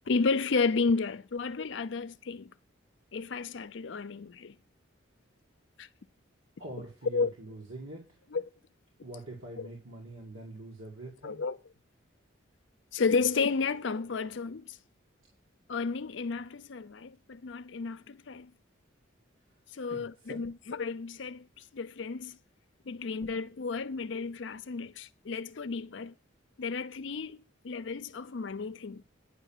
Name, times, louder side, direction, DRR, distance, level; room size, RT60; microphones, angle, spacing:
voice 1, 0.1-2.5 3.1-4.5 5.8-5.9 7.1-7.3 8.3-8.4 9.6-9.7 11.2-11.6 12.9-14.8 15.7-18.5 19.7-21.5 21.7-22.4 22.9-26.1 26.6-27.4 27.6-29.0, left 4 dB, 65° left, 0.5 m, -32 dB
voice 2, 6.6-8.0 9.0-11.4 19.9-20.4 23.0-23.1, right 1 dB, 90° right, 2.1 m, -44 dB
9.8 x 5.9 x 7.2 m
head